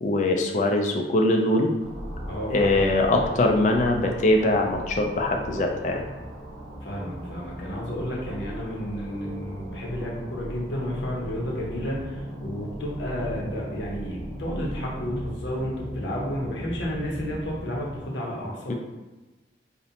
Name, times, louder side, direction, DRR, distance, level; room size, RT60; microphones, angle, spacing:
voice 1, 0.0-1.7 2.5-6.0 18.7-18.8, left 2 dB, 40° left, 2 dB, 0.3 m, -22 dB
sound 1, 1.8-18.0, equal, 25° left, 1.0 m, -37 dB
voice 2, 2.3-2.9 6.8-18.7, equal, 80° left, -3 dB, 0.7 m, -32 dB
2.5 x 2.1 x 2.7 m, 1.1 s
head